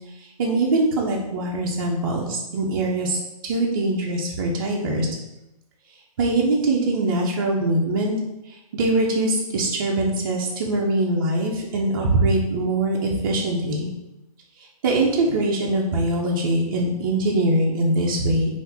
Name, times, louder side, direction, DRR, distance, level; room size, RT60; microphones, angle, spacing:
voice 1, 0.4-3.2 3.4-5.1 6.2-8.2 8.7-13.9 14.8-18.5, right 2 dB, 35° right, -2 dB, 0.5 m, -22 dB
3.5 x 2.5 x 2.7 m, 0.90 s
hypercardioid pair, 155°, 20 cm